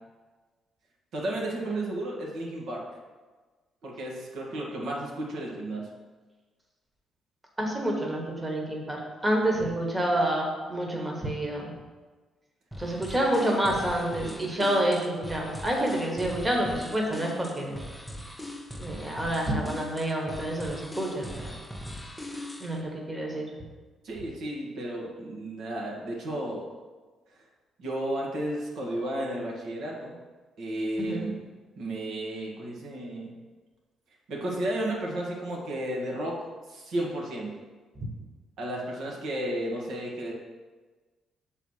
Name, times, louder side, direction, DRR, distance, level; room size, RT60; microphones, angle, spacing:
voice 1, 1.1-2.8 3.8-5.9 13.1-13.3 14.1-14.5 24.0-26.6 27.8-30.2 30.6-31.3 31.8-33.3 34.3-37.6 38.6-40.3, right 1 dB, 75° right, -2 dB, 1.5 m, -33 dB
voice 2, 7.6-11.7 12.8-17.8 18.8-21.5 22.6-23.4 31.0-31.3 38.0-38.1, right 1 dB, 15° right, 0 dB, 1.3 m, -28 dB
sound 1, 12.7-22.8, left 1 dB, 5° left, 0.7 m, -41 dB
6.2 x 4.1 x 5.5 m, 1.3 s
cardioid pair, 90°, 0 cm